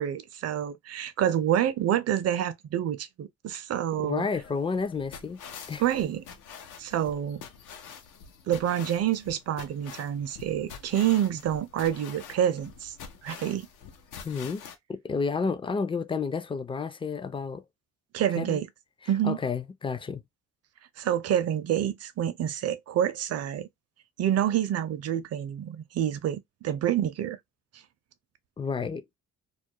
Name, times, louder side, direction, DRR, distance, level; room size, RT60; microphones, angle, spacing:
voice 1, 0.0-4.3 5.8-6.2 6.8-7.4 8.5-12.9 13.2-13.7 18.1-18.7 19.1-19.4 21.0-23.7 24.2-27.4, right 10 dB, 55° right, 0.5 m, -27 dB
voice 2, 4.0-5.4 5.7-5.8 14.2-14.6 14.9-17.6 18.4-18.6 19.2-20.2 28.6-29.0, left 5 dB, 20° left, 0.3 m, -30 dB
sound 1, 4.4-14.8, left 7 dB, 85° left, 0.6 m, -46 dB
2.4 x 2.0 x 2.7 m
cardioid pair, 90°, 30 cm